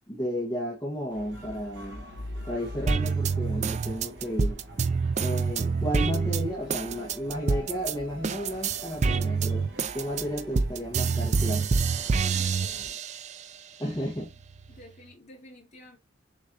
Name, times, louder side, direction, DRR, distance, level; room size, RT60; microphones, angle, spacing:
voice 1, 0.1-2.1 2.5-4.6 5.2-11.8 13.8-14.3, equal, 20° left, 1.1 m, -33 dB
sound 1, 1.1-12.9, right 1 dB, 65° right, 1.0 m, -45 dB
sound 2, 1.8-4.5, left 1 dB, 85° left, 0.6 m, -41 dB
sound 3, 2.9-7.9 8.2-13.4 13.9-14.9, right 5 dB, 40° right, 0.3 m, -27 dB
voice 2, 12.3-13.1 14.7-16.0, left 1 dB, 40° left, 2.2 m, -50 dB
6.3 x 2.6 x 2.7 m
head